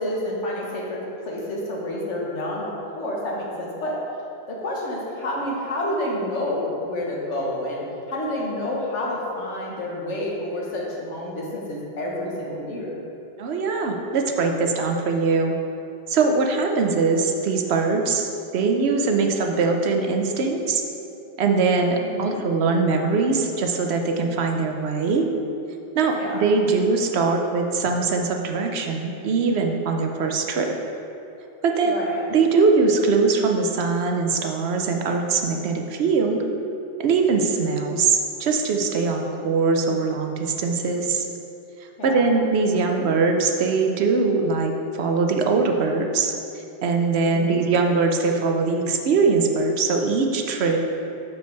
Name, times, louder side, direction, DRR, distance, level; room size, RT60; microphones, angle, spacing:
voice 1, 0.0-4.0 4.5-13.0 21.9-22.4 26.1-26.4 31.9-32.2 42.0-42.3 42.7-43.1 47.3-47.6, left 1 dB, 85° left, -3 dB, 1.6 m, -29 dB
voice 2, 13.4-15.5 16.1-20.8 21.4-25.3 25.9-30.8 31.6-32.0 32.3-36.4 37.0-41.3 42.0-44.7 45.0-46.3 46.8-50.8, right 4 dB, 65° right, 3 dB, 0.9 m, -22 dB
6.4 x 5.4 x 4.5 m, 2.8 s
omnidirectional pair, 1.2 m